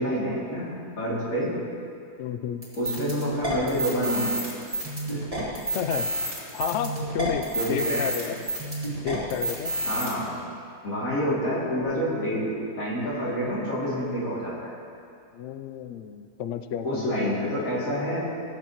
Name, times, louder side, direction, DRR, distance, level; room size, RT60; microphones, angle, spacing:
voice 1, 0.0-1.5 2.8-4.4 5.1-5.2 7.5-8.1 9.9-10.3 10.8-14.7 16.8-18.2, equal, 55° left, -7 dB, 3.0 m, -28 dB
voice 2, 2.2-2.7 5.7-6.1 6.5-8.4 9.0-9.7 15.3-17.4, left 8 dB, 85° left, 9 dB, 0.6 m, -31 dB
sound 1, 2.6-10.1, right 1 dB, 20° right, 2.4 m, -30 dB
17.5 x 7.7 x 3.0 m, 2.4 s
omnidirectional pair, 1.8 m